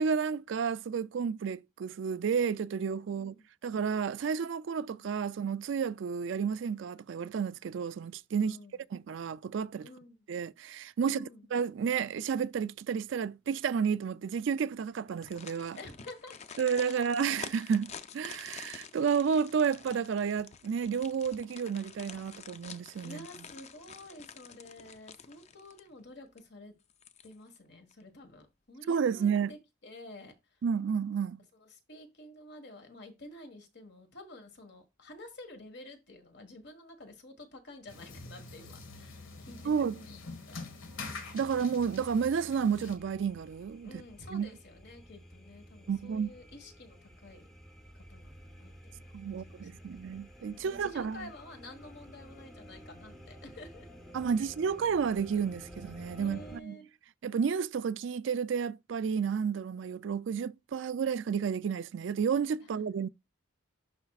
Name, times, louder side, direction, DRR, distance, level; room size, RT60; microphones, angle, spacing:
voice 1, 0.0-3.3 3.6-8.6 8.9-9.9 10.3-11.2 11.5-15.8 16.6-23.2 28.9-29.5 30.6-31.4 39.7-39.9 41.3-44.0 44.3-44.5 45.9-46.3 49.1-51.2 54.1-56.8 57.2-63.1, right 6 dB, 65° right, 0.3 m, -31 dB
voice 2, 3.1-3.5 8.4-8.8 9.8-10.2 11.0-11.5 15.7-16.6 23.0-26.7 27.2-30.6 31.5-40.2 40.5-40.6 43.8-47.5 47.9-49.7 50.5-53.9 54.4-54.5 56.1-56.9 62.6-63.0, left 1 dB, 55° left, 1.5 m, -50 dB
sound 1, 15.1-26.0 26.4-26.5 26.9-27.6 27.9-28.0, left 6 dB, 35° left, 0.4 m, -48 dB
sound 2, 37.9-43.0, left 3 dB, 75° left, 1.6 m, -45 dB
sound 3, 42.9-56.6, equal, 5° left, 0.9 m, -52 dB
11.5 x 4.4 x 2.4 m
head